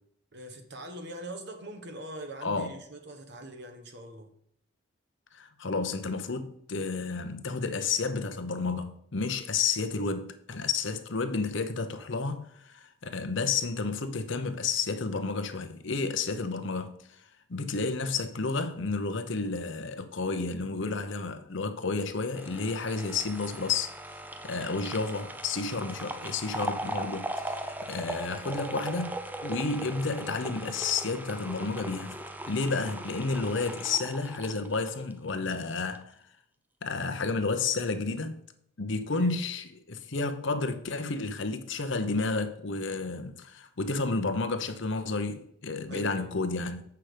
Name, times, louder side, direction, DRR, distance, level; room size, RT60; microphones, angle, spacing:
voice 1, 0.3-4.3 39.1-39.4 45.9-46.3, right 1 dB, 50° right, 1.2 m, -43 dB
voice 2, 5.3-17.2 17.5-29.2 29.4-32.2 32.5-36.1 36.8-38.5 38.8-46.8, left 4 dB, 55° left, 0.8 m, -31 dB
sound 1, 22.4-35.6 35.9-36.0, right 1 dB, 10° right, 0.4 m, -39 dB
7.8 x 5.8 x 5.1 m
head